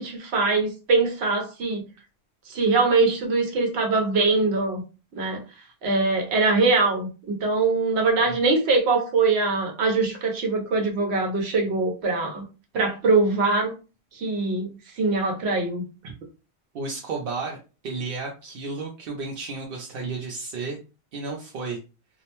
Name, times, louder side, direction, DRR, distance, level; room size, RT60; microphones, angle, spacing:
voice 1, 0.0-1.8 2.5-4.8 5.2-5.4 5.8-12.4 12.7-13.7 14.1-15.8, right 3 dB, 80° right, 2 dB, 1.1 m, -22 dB
voice 2, 16.7-17.6 17.8-20.8 21.1-21.8, right 4 dB, 65° right, -1 dB, 0.7 m, -32 dB
2.5 x 2.1 x 2.8 m, 0.32 s
omnidirectional pair, 1.1 m